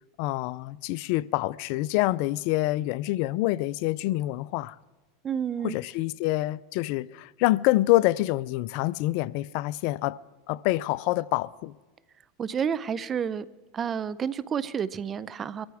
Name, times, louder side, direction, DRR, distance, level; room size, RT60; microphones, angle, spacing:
voice 1, 0.2-4.8 5.6-10.2 10.5-11.7, left 17 dB, 60° left, 0.4 m, -26 dB
voice 2, 5.2-5.8 12.4-13.5 13.7-15.7, right 7 dB, 30° right, 0.7 m, -30 dB
24.0 x 14.0 x 3.5 m
hypercardioid pair, 105°, 0 cm